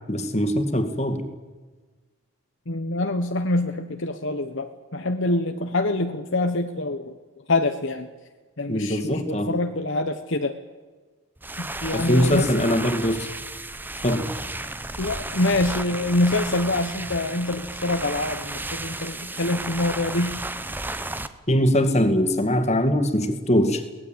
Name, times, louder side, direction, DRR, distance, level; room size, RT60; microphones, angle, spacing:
voice 1, 0.1-1.3 8.7-9.5 11.9-13.3 14.0-14.3 21.5-23.8, equal, 30° left, 8 dB, 2.3 m, -22 dB
voice 2, 2.7-7.1 7.5-8.1 8.6-10.6 11.6-12.7 15.0-20.4, left 2 dB, 55° left, 6 dB, 1.2 m, -25 dB
sound 1, 11.4-21.3, right 2 dB, 10° right, 0.9 m, -33 dB
23.5 x 19.0 x 8.9 m, 1.3 s
head